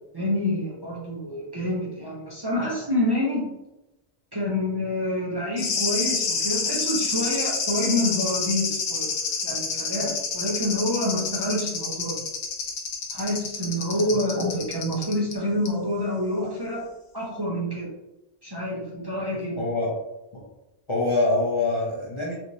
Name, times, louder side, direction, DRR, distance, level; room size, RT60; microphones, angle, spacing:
voice 1, 0.1-3.4 4.3-9.1 9.4-12.2 13.1-16.9 17.1-17.9 18.4-19.6, left 1 dB, 25° right, -6 dB, 0.6 m, -27 dB
sound 1, 5.6-15.3 15.7-15.8, left 5 dB, 80° left, 1.0 m, -28 dB
voice 2, 19.6-19.9 20.3-20.5 20.9-22.3, left 2 dB, 35° left, -5 dB, 0.6 m, -24 dB
3.4 x 2.9 x 2.6 m, 0.95 s
omnidirectional pair, 1.1 m